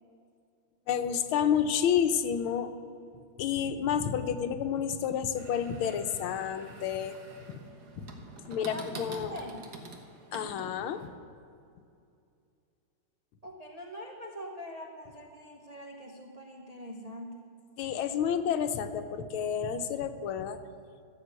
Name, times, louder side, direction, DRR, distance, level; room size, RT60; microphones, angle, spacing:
voice 1, 0.9-2.7 3.4-7.2 7.5-7.6 8.0-8.1 8.5-9.4 10.3-11.1 17.8-20.6, left 8 dB, 85° left, 9 dB, 1.6 m, -30 dB
sound 1, 5.4-11.1, right 2 dB, 55° right, 1.7 m, -47 dB
voice 2, 8.6-9.6 13.4-17.4, equal, 30° right, 0 dB, 0.7 m, -43 dB
14.5 x 7.7 x 8.2 m, 2.5 s
omnidirectional pair, 2.3 m